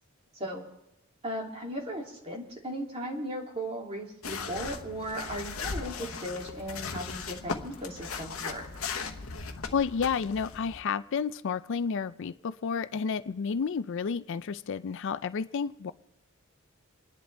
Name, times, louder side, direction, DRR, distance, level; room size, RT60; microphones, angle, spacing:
voice 1, 0.3-0.6 1.2-8.7, equal, 30° right, -2 dB, 2.8 m, -37 dB
sound 1, 4.2-10.8, left 5 dB, 85° left, 1.0 m, -38 dB
voice 2, 9.7-15.9, left 6 dB, 65° left, 14 dB, 0.4 m, -31 dB
28.5 x 10.5 x 3.4 m, 0.87 s
head